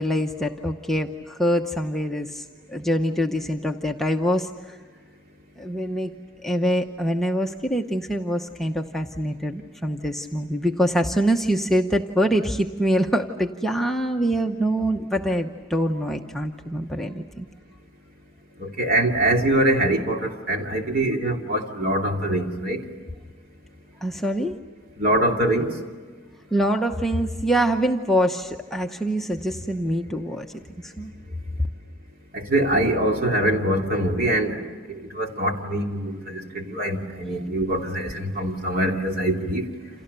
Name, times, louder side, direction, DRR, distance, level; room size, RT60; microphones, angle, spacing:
voice 1, 0.0-2.4 2.7-4.8 5.6-6.1 6.4-17.5 24.0-24.6 26.5-30.5 30.8-31.1, equal, ahead, 1 dB, 0.9 m, -24 dB
voice 2, 18.6-22.8 25.0-25.7 32.3-34.6 34.9-39.7, right 1 dB, 45° right, 2 dB, 2.9 m, -23 dB
29.5 x 28.0 x 6.8 m, 1.5 s
head